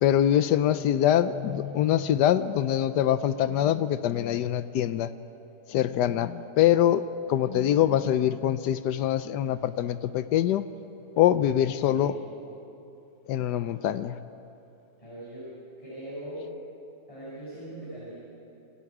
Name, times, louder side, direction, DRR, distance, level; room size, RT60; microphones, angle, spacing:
voice 1, 0.0-5.1 5.7-10.6 11.2-12.2 13.3-14.2, left 11 dB, 90° left, 13 dB, 1.3 m, -24 dB
voice 2, 11.9-12.2 15.0-15.5 15.8-16.5 17.1-18.1, right 1 dB, 20° left, -8 dB, 6.5 m, -40 dB
28.5 x 26.0 x 4.9 m, 3.0 s
omnidirectional pair, 1.7 m